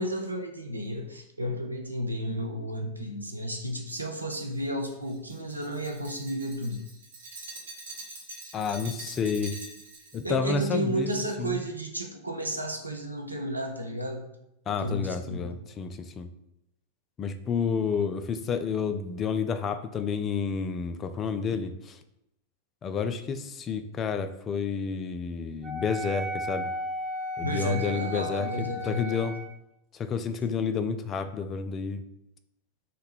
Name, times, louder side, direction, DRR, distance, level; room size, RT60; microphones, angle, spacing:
voice 1, 0.0-6.8 10.2-14.3 14.8-15.5 27.4-29.3, equal, 85° right, 2 dB, 0.5 m, -32 dB
Glass, 3.9-10.2, right 3 dB, 65° right, 1.0 m, -45 dB
voice 2, 8.5-9.6 10.1-11.1 11.4-11.6 14.7-16.3 17.2-22.0 22.8-26.7 27.4-29.3 29.9-32.0, left 5 dB, 25° left, 9 dB, 0.3 m, -30 dB
Wind instrument woodwind instrument, 25.6-29.5, left 1 dB, 25° right, 1.1 m, -35 dB
3.8 x 2.2 x 4.3 m, 0.81 s
figure-of-eight pair, 90°, 0 cm